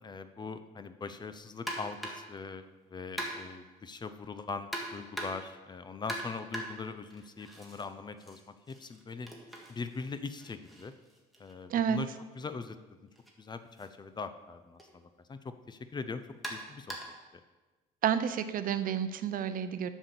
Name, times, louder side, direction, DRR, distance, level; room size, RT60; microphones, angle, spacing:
voice 1, 0.0-2.6 2.9-8.4 8.7-9.3 9.7-10.9 11.4-12.1 12.4-12.8 13.4-15.0 15.3-16.2 16.5-17.0, left 4 dB, 25° left, 10 dB, 0.6 m, -41 dB
sound 1, 1.7-2.4 3.2-3.7 4.7-5.6 6.1-7.8 8.2-12.0 13.1-13.3 13.8-13.9 14.8-14.9 16.4-17.3, right 1 dB, ahead, 1.7 m, -42 dB
voice 2, 11.7-12.0 18.0-19.9, right 8 dB, 55° right, 11 dB, 0.6 m, -30 dB
8.0 x 6.1 x 6.7 m, 1.2 s
cardioid pair, 110°, 17 cm